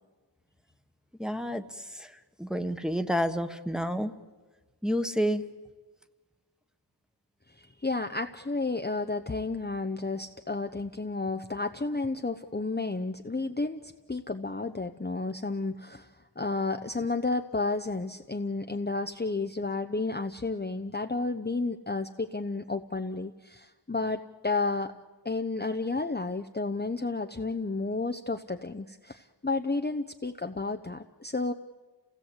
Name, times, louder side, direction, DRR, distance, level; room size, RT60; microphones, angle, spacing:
voice 1, 1.2-1.6 1.9-2.1 2.4-4.1 4.8-5.4, equal, ahead, 7 dB, 1.4 m, -29 dB
voice 2, 7.6-16.1 16.4-24.9 25.2-31.5, left 3 dB, 25° left, 6 dB, 0.8 m, -32 dB
29.0 x 17.0 x 8.1 m, 1.3 s
wide cardioid pair, 45°, 44 cm